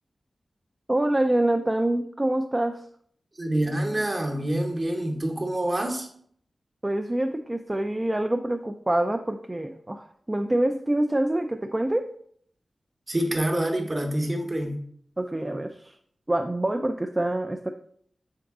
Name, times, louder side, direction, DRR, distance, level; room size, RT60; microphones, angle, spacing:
voice 1, 0.9-2.8 6.8-12.1 15.2-15.9 16.3-17.7, right 1 dB, 25° right, 5 dB, 0.3 m, -26 dB
voice 2, 3.4-6.1 13.1-14.8, right 1 dB, 40° right, 2 dB, 0.9 m, -26 dB
3.8 x 3.6 x 3.6 m, 0.63 s
cardioid pair, 50°, 0 cm